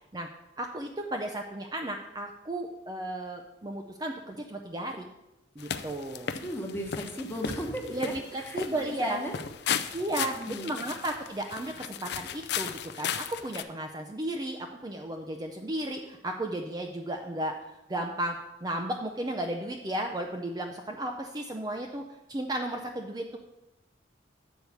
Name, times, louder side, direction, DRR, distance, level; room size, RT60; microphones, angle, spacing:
voice 1, 0.6-5.1 5.6-6.3 7.9-9.2 9.9-18.4 18.6-22.0 22.3-23.4, right 1 dB, 20° right, 3 dB, 0.4 m, -34 dB
sound 1, 5.6-13.6, left 8 dB, 55° left, 0.4 m, -36 dB
voice 2, 6.3-9.4 9.6-10.7, equal, 10° left, 2 dB, 1.0 m, -37 dB
8.1 x 4.6 x 7.0 m, 0.95 s
head